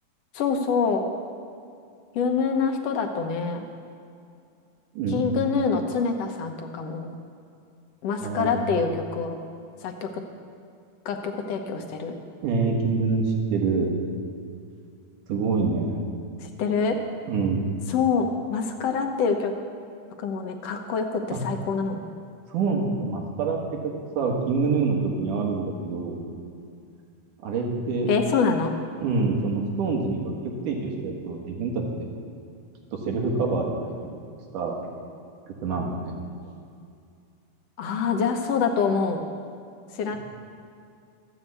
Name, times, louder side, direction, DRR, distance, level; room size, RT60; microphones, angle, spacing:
voice 1, 0.3-1.1 2.1-3.7 5.1-7.1 8.0-9.4 9.8-10.1 11.0-12.1 16.4-17.0 17.9-19.5 20.2-22.0 28.1-28.7 37.8-39.2 39.9-40.2, left 5 dB, 65° left, 4 dB, 1.8 m, -25 dB
voice 2, 4.9-5.2 8.2-8.5 12.4-13.9 15.3-16.0 17.3-17.7 22.5-26.2 27.4-28.1 29.0-30.3 30.7-32.1 32.9-34.1 34.5-34.8 35.6-36.2, right 4 dB, 80° right, 0 dB, 3.1 m, -26 dB
14.0 x 7.1 x 8.3 m, 2.4 s
omnidirectional pair, 3.6 m